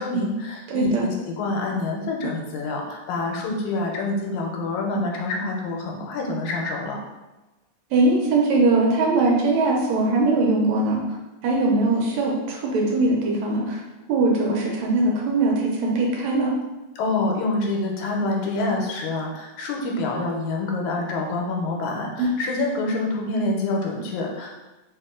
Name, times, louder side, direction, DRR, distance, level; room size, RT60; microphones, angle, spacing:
voice 1, 0.0-7.0 17.0-24.5, left 2 dB, 85° left, 0 dB, 2.1 m, -26 dB
voice 2, 0.7-1.1 7.9-11.0 11.4-13.8 14.1-16.5 22.2-22.3, right 2 dB, 75° right, -1 dB, 1.9 m, -21 dB
4.4 x 2.9 x 3.6 m, 1.0 s
omnidirectional pair, 3.4 m